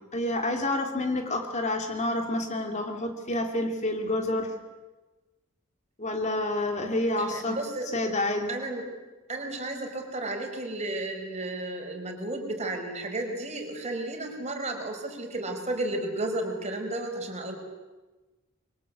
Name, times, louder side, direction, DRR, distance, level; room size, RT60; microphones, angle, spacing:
voice 1, 0.1-4.5 6.0-7.6 7.9-8.5, left 1 dB, 35° left, 4 dB, 2.7 m, -28 dB
voice 2, 7.3-7.9 8.5-8.8 9.3-17.5, right 2 dB, 30° right, 4 dB, 4.9 m, -33 dB
26.5 x 23.5 x 8.4 m, 1.2 s
head